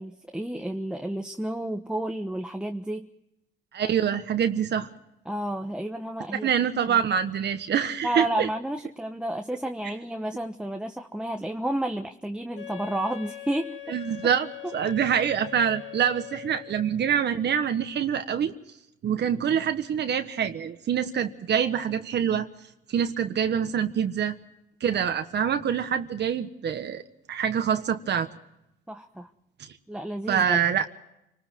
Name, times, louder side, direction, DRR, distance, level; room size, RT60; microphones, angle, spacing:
voice 1, 0.0-3.1 5.2-6.5 6.9-7.0 8.0-13.8 14.8-14.9 28.9-29.3 29.9-30.6, right 1 dB, 5° right, 4 dB, 1.1 m, -31 dB
voice 2, 3.7-4.9 6.4-8.5 13.9-18.5 19.0-22.5 22.9-24.4 24.8-27.0 27.3-28.3 30.3-30.8, right 8 dB, 60° right, 7 dB, 1.4 m, -25 dB
Wind instrument woodwind instrument, 12.5-17.0, left 13 dB, 70° left, 2.8 m, -41 dB
29.0 x 20.0 x 4.6 m, 0.85 s
cardioid pair, 90°, 20 cm